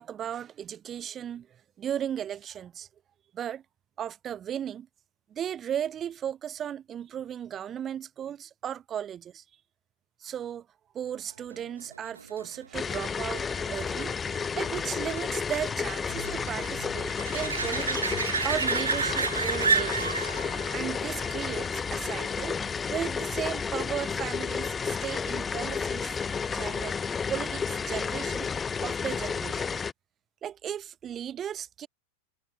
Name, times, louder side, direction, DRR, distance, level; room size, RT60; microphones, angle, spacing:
voice 1, 0.0-1.5 1.8-2.9 3.3-3.6 4.0-4.9 5.3-9.4 10.2-10.7 10.9-13.4 13.7-14.2 14.5-18.2 18.4-20.4 20.7-22.6 22.9-26.2 26.5-27.0 27.3-28.5 28.8-29.7 30.4-31.9, right 9 dB, 25° right, 0.8 m, -36 dB
sound 1, 11.5-22.8 28.4-28.5, right 5 dB, 75° right, 0.7 m, -33 dB
sound 2, 12.7-29.9, left 6 dB, 15° left, 0.8 m, -31 dB
figure-of-eight pair, 90°, 0 cm